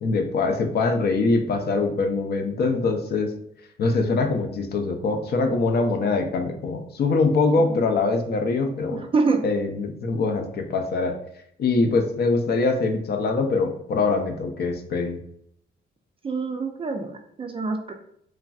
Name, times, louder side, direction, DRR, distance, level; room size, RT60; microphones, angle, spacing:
voice 1, 0.0-3.3 3.8-9.0 9.4-11.2 11.6-15.2, left 3 dB, 55° left, 5 dB, 0.5 m, -23 dB
voice 2, 8.9-9.5 16.2-17.9, right 4 dB, 30° right, 6 dB, 0.3 m, -26 dB
3.2 x 2.5 x 2.3 m, 0.71 s
cardioid pair, 90°, 20 cm